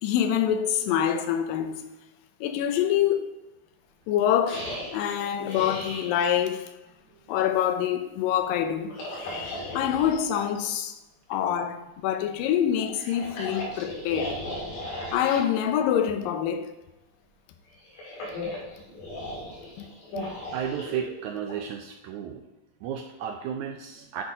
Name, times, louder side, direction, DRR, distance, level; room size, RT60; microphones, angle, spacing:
voice 1, 0.0-1.9 2.4-3.2 4.1-6.7 7.3-11.0 11.3-14.4 15.1-16.7 19.8-19.9, left 9 dB, 85° left, 2.4 m, -26 dB
sound 1, 4.5-6.1 8.8-10.2 12.8-15.5 17.7-21.6, left 1 dB, 70° left, 3.9 m, -37 dB
voice 2, 20.5-22.4 22.8-24.2, right 8 dB, 80° right, 1.7 m, -33 dB
9.9 x 4.1 x 4.8 m
omnidirectional pair, 3.9 m